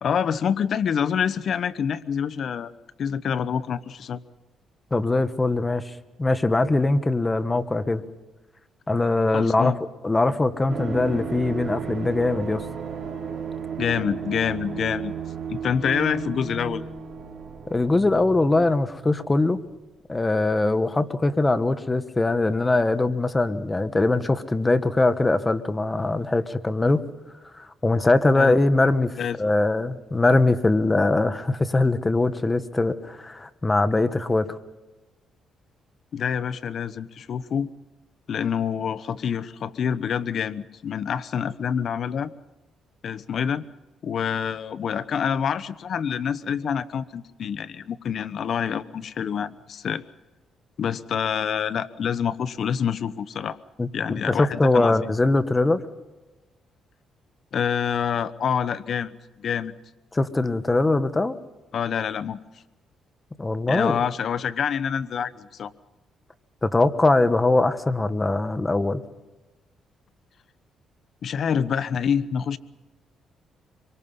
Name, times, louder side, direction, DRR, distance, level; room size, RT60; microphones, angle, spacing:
voice 1, 0.0-2.7 3.0-4.2 9.3-9.8 13.8-15.1 15.5-16.9 28.3-28.6 29.2-29.4 36.1-37.7 38.3-42.3 43.0-43.6 44.0-50.0 50.8-53.6 53.9-55.0 57.5-59.7 61.7-62.4 63.7-65.7 71.2-72.6, left 7 dB, 60° left, 15 dB, 0.9 m, -26 dB
voice 2, 4.9-5.9 6.2-8.0 8.9-9.7 10.0-12.7 17.7-19.6 20.1-27.1 27.5-34.6 53.8-53.9 54.3-55.8 60.1-61.4 63.4-64.0 66.6-69.0, left 2 dB, 20° left, 12 dB, 1.3 m, -22 dB
sound 1, 10.7-19.2 19.5-19.6, right 6 dB, 50° right, 4.9 m, -34 dB
25.5 x 24.0 x 5.6 m, 1.1 s
cardioid pair, 90°, 0 cm